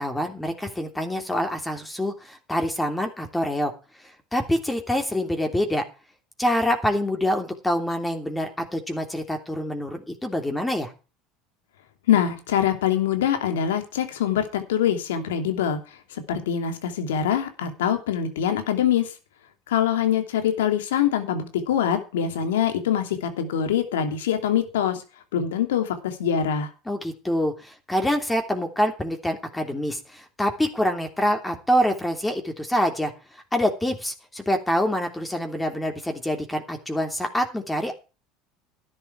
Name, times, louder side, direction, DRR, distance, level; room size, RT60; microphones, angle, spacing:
voice 1, 0.0-3.7 4.3-5.8 6.4-10.9 26.8-33.1 33.5-37.9, equal, 10° left, 4 dB, 3.1 m, -26 dB
voice 2, 12.1-15.8 16.1-19.1 19.7-25.0 25.3-26.7, left 9 dB, 90° left, 7 dB, 2.9 m, -24 dB
12.5 x 11.0 x 4.7 m, 0.32 s
supercardioid pair, 90°, 0 cm